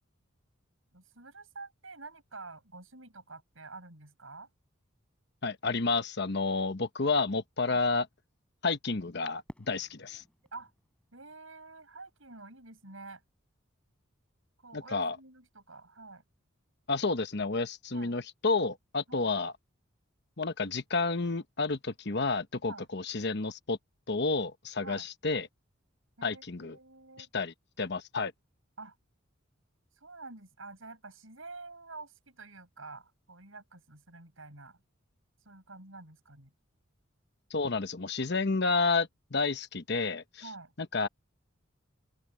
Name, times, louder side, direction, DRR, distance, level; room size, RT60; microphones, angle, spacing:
voice 1, 0.9-4.5 7.7-7.8 10.1-10.2 10.5-10.7 11.1-13.2 14.6-16.2 17.9-18.1 19.1-19.3 22.6-22.9 24.8-25.1 26.2-27.3 28.8-29.0 30.0-34.8 35.5-36.5 40.4-40.7, right 3 dB, 80° right, 7.4 m, -48 dB
voice 2, 5.4-8.1 8.6-10.2 14.7-15.2 16.9-19.5 20.4-23.8 24.1-25.5 26.2-26.8 27.2-28.3 37.5-40.4 40.9-41.1, left 3 dB, 55° left, 1.1 m, -30 dB
Fireworks, 9.5-12.5, equal, 5° left, 7.8 m, -54 dB
open air
head